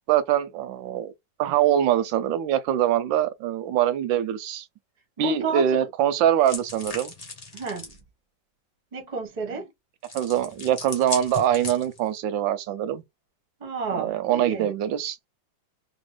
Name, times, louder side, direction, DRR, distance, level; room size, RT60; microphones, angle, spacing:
voice 1, 0.1-1.1 1.4-4.6 5.2-7.1 10.1-13.0 13.9-15.3, right 10 dB, 85° right, 1.3 m, -23 dB
voice 2, 5.2-5.6 7.5-7.9 8.9-9.7 13.6-14.7, right 4 dB, 30° right, 0.9 m, -31 dB
sound 1, 6.4-8.0 10.0-12.2, left 3 dB, 40° left, 0.5 m, -37 dB
3.0 x 2.9 x 3.1 m
omnidirectional pair, 2.0 m